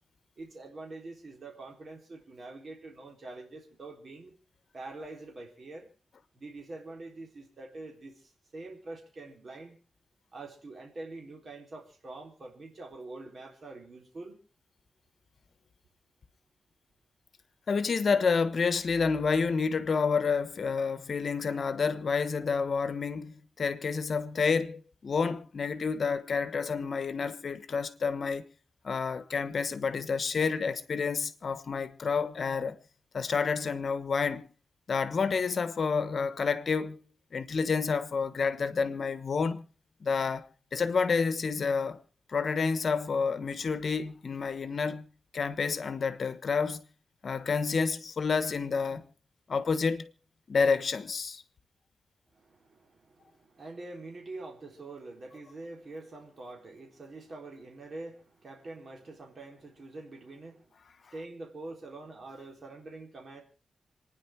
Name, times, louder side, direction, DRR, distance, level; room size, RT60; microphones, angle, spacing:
voice 1, 0.4-4.3 4.7-5.9 6.3-9.8 10.3-14.4 52.3-60.7 61.1-63.4, right 2 dB, 45° right, 3.9 m, -45 dB
voice 2, 17.7-28.5 28.8-32.8 33.1-34.5 34.9-37.0 37.3-39.6 40.0-42.0 42.3-45.1 45.3-46.8 47.2-49.1 49.5-50.1 50.5-51.4, left 5 dB, 55° left, 1.3 m, -29 dB
27.0 x 10.0 x 4.6 m
wide cardioid pair, 115°, 0 cm